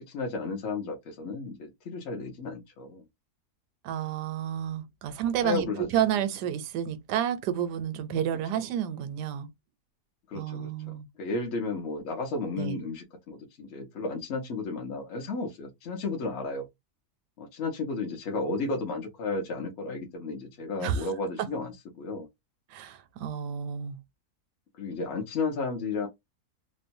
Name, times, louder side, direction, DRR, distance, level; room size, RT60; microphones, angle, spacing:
voice 1, 0.0-3.0 5.4-5.9 10.3-16.7 17.4-22.3 24.8-26.1, left 3 dB, 55° left, 0.8 m, -33 dB
voice 2, 3.8-9.5 10.3-11.1 12.6-12.8 20.8-21.1 21.4-21.5 22.7-24.0, right 9 dB, 85° right, 1.2 m, -30 dB
3.0 x 2.1 x 2.6 m
omnidirectional pair, 1.7 m